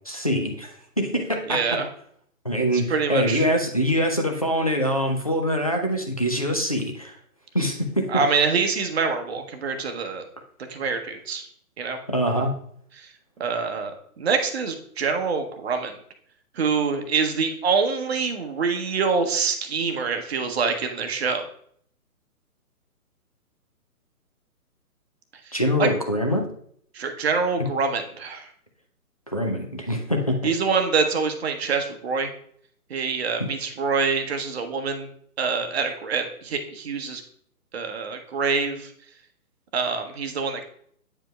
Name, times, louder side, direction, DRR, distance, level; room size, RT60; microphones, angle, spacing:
voice 1, 0.1-1.6 2.4-7.1 7.5-8.1 12.1-12.5 25.5-26.5 29.3-30.4 33.4-33.5, equal, 25° left, 1 dB, 0.4 m, -24 dB
voice 2, 1.5-1.9 2.9-3.4 8.1-10.3 10.7-11.5 11.8-12.0 13.0-13.1 13.4-16.0 16.6-21.5 25.8-25.9 26.9-28.5 30.4-32.3 32.9-35.1 35.4-37.2 37.7-38.9 39.7-40.6, right 5 dB, 45° right, 6 dB, 0.9 m, -25 dB
8.9 x 5.0 x 2.2 m, 0.64 s
figure-of-eight pair, 140°, 45 cm